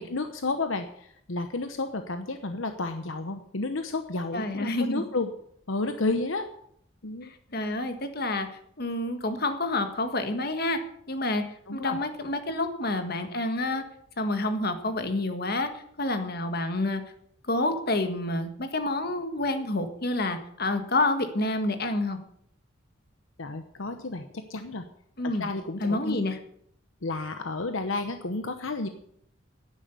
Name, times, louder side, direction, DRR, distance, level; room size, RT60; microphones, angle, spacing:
voice 1, 0.0-5.3 5.7-6.5 7.0-7.3 11.7-12.0 23.4-24.8 25.2-26.2 27.0-28.9, left 3 dB, 75° left, 8 dB, 1.0 m, -31 dB
voice 2, 4.3-5.0 7.2-8.5 8.8-10.8 11.1-11.4 11.7-13.8 14.2-17.0 17.4-22.2 25.2-25.5 25.8-26.4, left 2 dB, 50° left, 8 dB, 1.6 m, -28 dB
11.0 x 9.8 x 8.3 m, 0.69 s
head